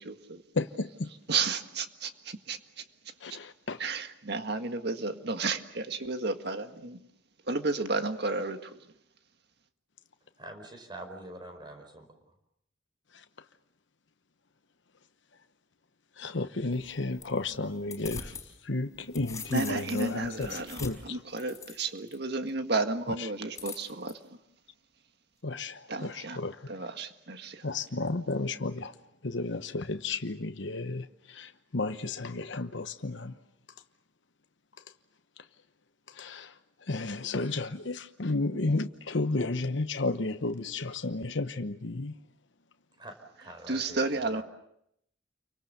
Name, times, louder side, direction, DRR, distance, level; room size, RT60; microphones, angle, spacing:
voice 1, 0.0-0.4 1.3-2.8 3.3-3.4 3.8-7.0 7.5-8.9 19.5-24.2 25.9-26.4 26.7-27.7 43.7-44.4, right 3 dB, 55° right, 1.8 m, -32 dB
voice 2, 0.5-1.1 3.2-3.8 13.1-13.2 16.2-18.4 18.6-21.2 25.4-26.7 27.6-28.9 29.2-33.4 36.1-36.5 36.8-42.1, left 3 dB, 70° left, 1.0 m, -33 dB
voice 3, 10.4-12.1 43.0-44.4, right 1 dB, 25° right, 4.7 m, -45 dB
sound 1, 16.7-18.5 18.8-22.2 23.6-24.1, left 4 dB, 15° left, 5.0 m, -43 dB
29.5 x 24.5 x 6.8 m
head